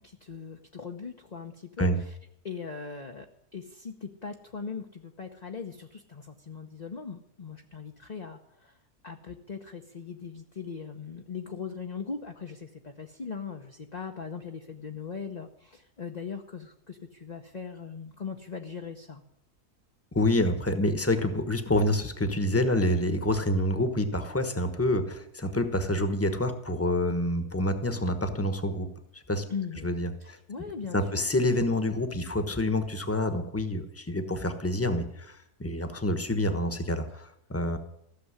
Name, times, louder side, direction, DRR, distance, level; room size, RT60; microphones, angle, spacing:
voice 1, 0.0-2.2 2.4-3.3 3.5-8.8 9.0-19.2 29.5-29.9 30.2-31.2, left 5 dB, 35° left, 3 dB, 0.8 m, -40 dB
voice 2, 20.1-28.9 29.1-29.4 29.8-30.4 30.9-37.8, left 1 dB, 10° left, 8 dB, 1.1 m, -27 dB
15.0 x 6.9 x 9.7 m, 0.77 s
omnidirectional pair, 1.6 m